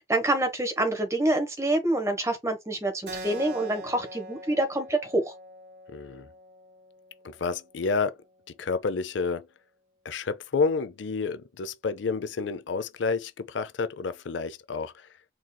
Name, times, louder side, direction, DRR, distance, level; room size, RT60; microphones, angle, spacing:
voice 1, 0.0-5.3, right 1 dB, 15° right, 1.1 m, -26 dB
Keyboard (musical), 3.1-8.2, right 1 dB, 65° right, 2.1 m, -43 dB
voice 2, 5.9-6.3 7.2-8.2 8.6-9.5 10.0-15.1, left 4 dB, 75° left, 0.5 m, -29 dB
4.4 x 3.8 x 2.2 m
head